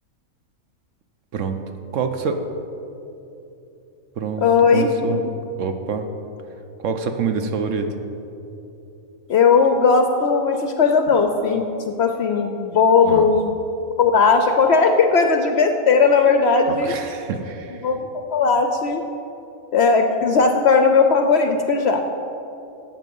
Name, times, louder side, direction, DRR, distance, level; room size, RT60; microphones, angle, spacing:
voice 1, 1.9-2.5 4.2-5.2 5.6-6.1 6.8-7.9 13.0-13.3 16.7-17.9, right 5 dB, 65° right, 7 dB, 1.0 m, -26 dB
voice 2, 4.4-4.9 9.3-13.5 14.0-16.9 17.8-18.0 18.3-19.0 19.7-22.0, left 5 dB, 65° left, 5 dB, 0.7 m, -17 dB
11.0 x 7.6 x 5.3 m, 2.9 s
omnidirectional pair, 1.5 m